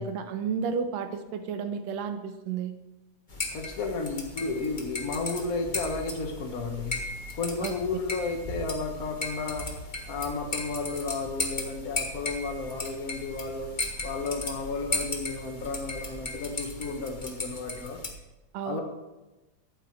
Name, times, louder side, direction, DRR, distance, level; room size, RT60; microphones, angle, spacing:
voice 1, 0.0-2.7 7.6-7.7 18.5-18.8, right 6 dB, 65° right, 8 dB, 2.0 m, -32 dB
sound 1, 3.3-18.1, left 2 dB, 35° left, 0.8 m, -36 dB
voice 2, 3.5-7.0 7.3-9.7 10.1-13.7 14.0-18.0 18.6-18.8, left 4 dB, 80° left, 2 dB, 0.8 m, -33 dB
13.5 x 9.3 x 4.6 m, 1.1 s
omnidirectional pair, 3.7 m